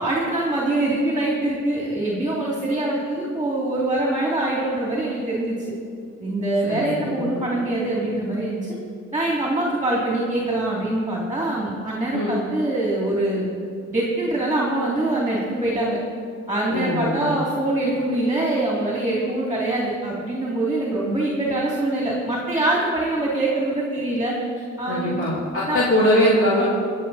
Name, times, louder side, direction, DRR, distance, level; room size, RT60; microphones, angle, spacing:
voice 1, 0.0-5.6 6.2-8.6 9.1-13.5 13.9-16.0 16.5-24.3 24.8-25.2 25.7-25.8, right 1 dB, 15° right, -4 dB, 3.0 m, -24 dB
voice 2, 6.6-7.4 12.1-12.4 16.7-17.4 24.9-26.6, left 1 dB, 45° left, -8 dB, 3.3 m, -22 dB
24.0 x 8.2 x 4.3 m, 2.3 s
cardioid pair, 90°, 30 cm